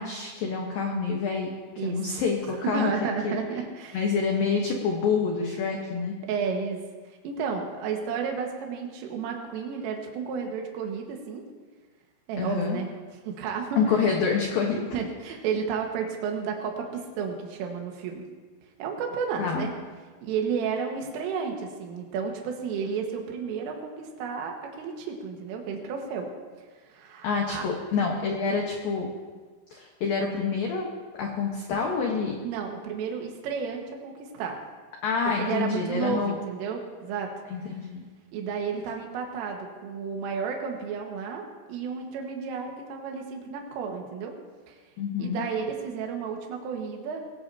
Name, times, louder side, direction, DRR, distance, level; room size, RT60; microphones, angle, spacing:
voice 1, 0.0-1.5 1.8-2.9 3.2-3.4 3.9-6.2 12.4-12.8 13.8-14.8 19.4-19.7 27.2-29.1 29.7-30.9 31.2-32.4 35.0-36.4 37.5-38.1 45.0-45.4, left 5 dB, 70° left, 0 dB, 2.2 m, -27 dB
voice 2, 1.8-4.0 6.3-6.8 7.2-11.4 12.3-12.9 13.3-13.8 14.9-18.2 18.8-19.7 20.2-26.3 26.9-27.7 32.4-34.6 35.4-37.3 38.3-41.4 41.7-44.3 44.7-44.8 45.2-47.2, right 6 dB, 75° right, 1 dB, 4.1 m, -32 dB
21.5 x 17.0 x 2.8 m, 1.4 s
omnidirectional pair, 6.0 m